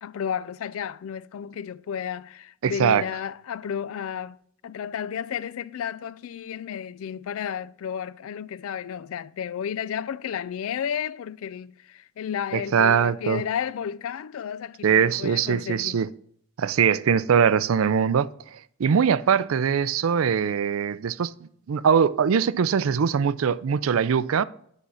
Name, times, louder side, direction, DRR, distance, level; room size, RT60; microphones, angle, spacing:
voice 1, 0.0-4.4 4.6-16.0, left 8 dB, 75° left, 0.3 m, -32 dB
voice 2, 2.6-3.0 12.5-13.4 14.8-16.1 16.6-24.4, right 7 dB, 70° right, 0.4 m, -22 dB
9.7 x 3.8 x 5.5 m
head